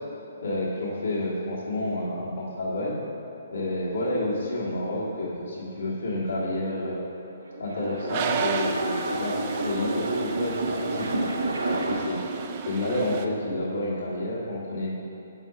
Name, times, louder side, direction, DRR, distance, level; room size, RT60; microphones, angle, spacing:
voice 1, 0.4-2.9 3.5-7.0 7.6-12.2 12.6-14.9, left 1 dB, 75° left, -7 dB, 1.7 m, -30 dB
sound 1, 7.3-12.2, right 1 dB, 75° right, 0.8 m, -30 dB
Toilet flush, 8.1-13.3, right 7 dB, 35° right, 0.4 m, -33 dB
7.3 x 5.5 x 4.9 m, 2.8 s
figure-of-eight pair, 130°, 0 cm